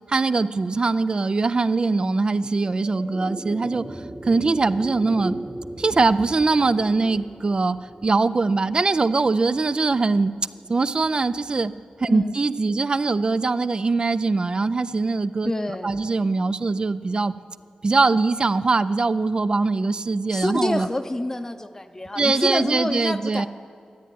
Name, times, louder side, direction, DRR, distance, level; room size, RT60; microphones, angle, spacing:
voice 1, 0.1-5.4 5.8-10.3 10.7-11.7 12.0-15.5 15.8-17.3 17.8-20.9 22.2-23.5, right 3 dB, 35° right, 15 dB, 0.4 m, -22 dB
sound 1, 2.2-12.7, right 1 dB, 15° right, 0.9 m, -39 dB
voice 2, 15.4-16.0 20.3-23.5, left 1 dB, 20° left, 8 dB, 0.7 m, -27 dB
13.0 x 9.3 x 9.3 m, 2.1 s
wide cardioid pair, 110°, 2 cm